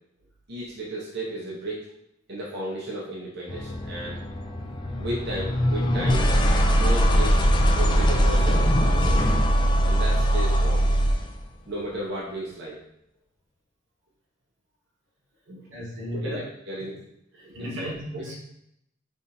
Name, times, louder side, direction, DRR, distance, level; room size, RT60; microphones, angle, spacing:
voice 1, 0.5-1.9 2.3-4.2 5.0-6.2 6.7-7.5 7.7-9.3 9.8-11.0 11.7-12.8 15.5-15.6 16.1-17.0 17.4-18.2, right 1 dB, 60° right, -5 dB, 0.8 m, -34 dB
sound 1, 3.5-11.3, equal, 25° left, 0.3 m, -21 dB
voice 2, 15.7-16.4 17.4-18.5, equal, 85° right, -3 dB, 1.2 m, -35 dB
3.9 x 3.4 x 2.6 m, 0.76 s
head